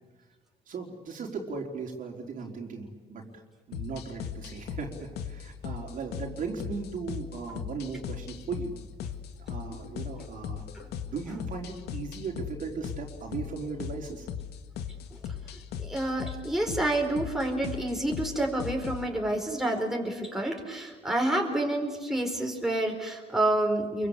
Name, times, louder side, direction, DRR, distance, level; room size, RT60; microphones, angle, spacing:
voice 1, 0.7-3.4 3.7-8.7 9.5-10.6 11.1-14.3, right 4 dB, 50° right, 1 dB, 4.4 m, -37 dB
sound 1, 3.7-19.1, left 8 dB, 75° left, 1.9 m, -38 dB
voice 2, 15.8-24.1, right 1 dB, ahead, 1 dB, 4.6 m, -28 dB
28.0 x 23.5 x 8.4 m, 1.3 s
cardioid pair, 110°, 17 cm